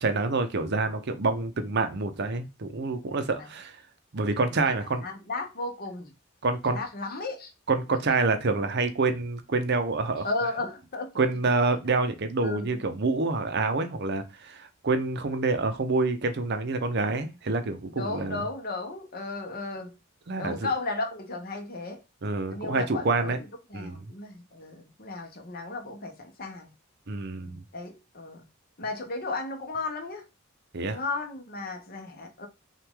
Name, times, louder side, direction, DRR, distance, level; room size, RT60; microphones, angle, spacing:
voice 1, 0.0-3.8 4.1-5.1 6.4-6.8 7.7-10.3 11.2-18.4 20.3-20.7 22.2-23.4 23.7-24.0 27.1-27.6 30.7-31.0, right 3 dB, 55° right, 0.7 m, -27 dB
voice 2, 4.8-6.1 6.7-7.5 7.9-8.0 10.2-11.1 12.4-12.8 17.9-19.9 20.4-22.0 22.5-23.3 23.7-26.7 27.7-28.4 28.8-30.3 30.9-32.5, left 3 dB, 50° left, 1.0 m, -34 dB
5.7 x 2.5 x 3.7 m
head